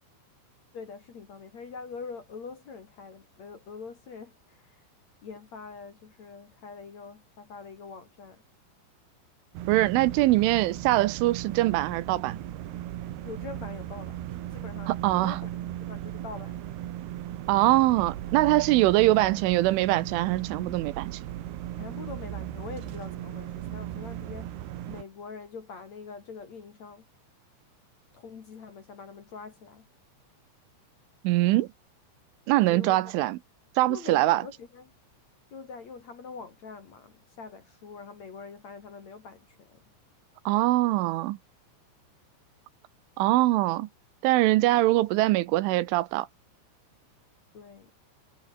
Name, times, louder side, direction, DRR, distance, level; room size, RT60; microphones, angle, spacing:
voice 1, 0.7-4.8 5.2-8.4 13.2-15.5 15.8-16.8 21.8-24.5 24.9-27.1 28.1-29.9 32.7-33.2 33.9-34.9 35.5-39.8 47.5-47.9, left 5 dB, 45° left, 2.7 m, -44 dB
sound 1, 9.5-25.0, right 12 dB, 65° right, 3.2 m, -37 dB
voice 2, 9.7-12.4 14.9-15.4 17.5-21.1 31.2-31.7 32.5-33.4 33.8-34.4 40.5-41.4 43.2-43.9 44.2-46.3, right 17 dB, 80° right, 3.3 m, -23 dB
omnidirectional pair, 5.7 m